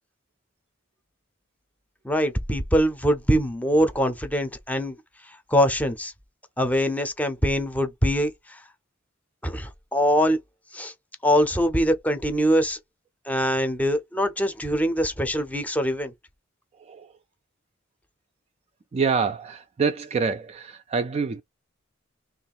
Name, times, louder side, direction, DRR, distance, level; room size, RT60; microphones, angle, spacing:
voice 1, 2.0-5.0 5.5-6.1 6.6-8.3 9.4-10.4 10.7-10.9 11.2-12.8 13.3-16.1, equal, 10° left, 0.6 m, -23 dB
voice 2, 16.8-17.1 18.9-21.4, right 5 dB, 30° right, 0.3 m, -26 dB
3.1 x 2.5 x 4.1 m
head